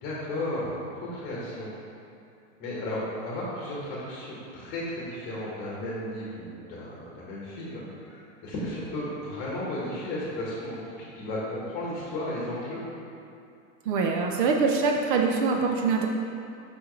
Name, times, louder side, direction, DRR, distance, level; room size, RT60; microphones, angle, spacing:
voice 1, 0.0-0.8 1.1-1.7 2.6-12.8, left 1 dB, 20° left, -6 dB, 1.2 m, -34 dB
voice 2, 13.9-16.1, right 4 dB, 40° right, 2 dB, 0.5 m, -24 dB
6.1 x 5.7 x 3.1 m, 2.5 s
supercardioid pair, 155°, 42 cm